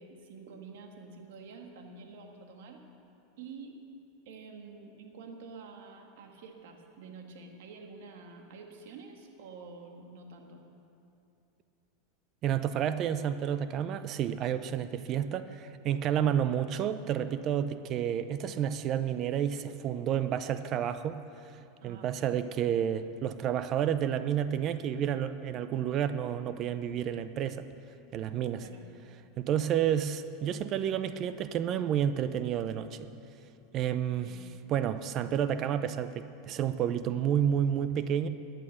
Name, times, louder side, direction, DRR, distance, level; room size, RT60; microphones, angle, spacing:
voice 1, 0.0-2.8 3.4-3.8 4.2-10.6 21.8-22.3 28.6-28.8 34.2-34.5, right 4 dB, 75° right, 3 dB, 1.7 m, -48 dB
voice 2, 12.4-21.2 21.8-27.7 28.1-28.7 29.4-33.1 33.7-34.4 34.7-38.3, right 9 dB, 40° right, 12 dB, 0.5 m, -30 dB
14.5 x 9.1 x 6.6 m, 2.7 s
supercardioid pair, 125°, 0 cm